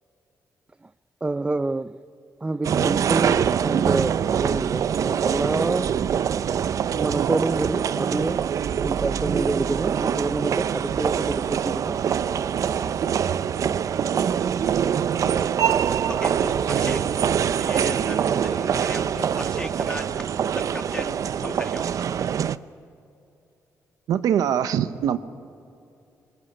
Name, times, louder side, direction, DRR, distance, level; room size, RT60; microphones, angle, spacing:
voice 1, 1.2-2.0 2.4-5.9 6.9-8.4 8.8-12.0, right 2 dB, 20° right, 0.5 m, -27 dB
sound 1, 2.6-22.6, right 8 dB, 65° right, 0.6 m, -24 dB
voice 2, 16.1-17.0 17.5-20.1 20.5-22.1, left 1 dB, 15° left, 1.8 m, -36 dB
voice 3, 24.1-25.2, right 9 dB, 90° right, 0.9 m, -22 dB
22.5 x 19.5 x 9.9 m
cardioid pair, 90°, 6 cm